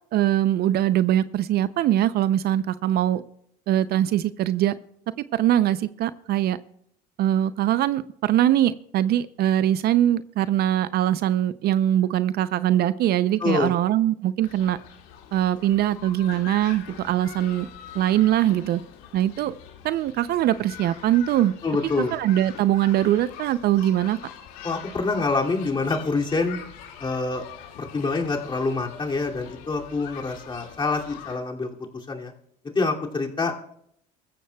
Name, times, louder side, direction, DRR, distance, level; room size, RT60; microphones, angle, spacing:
voice 1, 0.1-3.2 3.7-4.8 5.3-6.6 7.2-14.8 15.3-17.7 17.9-18.8 19.1-19.5 19.8-21.5 22.0-24.2, right 12 dB, 55° right, 15 dB, 0.5 m, -22 dB
voice 2, 13.4-13.7 21.6-22.1 24.6-26.6 27.0-27.4 27.9-31.7 32.1-32.3 32.7-33.7, left 3 dB, 25° left, 0 dB, 2.5 m, -26 dB
sound 1, 14.4-31.4, left 9 dB, 75° left, 2.2 m, -43 dB
24.0 x 14.5 x 2.3 m, 0.71 s
supercardioid pair, 85°, 20 cm